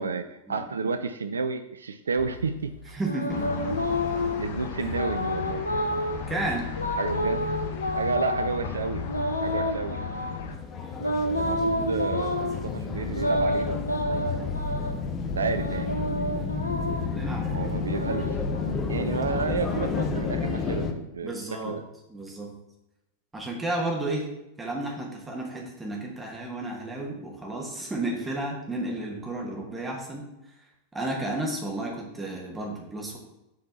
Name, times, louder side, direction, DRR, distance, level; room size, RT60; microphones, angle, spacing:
voice 1, 0.0-2.7 4.4-5.6 7.0-7.5 8.0-9.1 9.4-10.0 11.4-13.8 14.1-14.4 15.3-15.9 17.5-18.3 18.9-21.4 21.6-21.8, right 4 dB, 70° right, 9 dB, 0.4 m, -31 dB
sound 1, 2.2-4.5 4.9-6.2 6.8-8.5 9.1-10.4 11.0-12.5 13.1-15.0 15.5-17.2 17.7-19.1, left 1 dB, 80° left, 0.8 m, -30 dB
voice 2, 2.9-3.4 4.8-4.9 6.3-6.7 17.1-17.8 21.2-21.8 22.1-22.5 23.3-24.3 24.6-30.2 30.9-33.2, right 2 dB, 10° right, -2 dB, 1.8 m, -32 dB
sound 2, 3.3-10.6, left 5 dB, 55° left, 1.0 m, -35 dB
sound 3, 10.4-20.9, left 4 dB, 25° left, 0.9 m, -31 dB
7.3 x 4.3 x 4.1 m, 0.92 s
figure-of-eight pair, 90°, 0 cm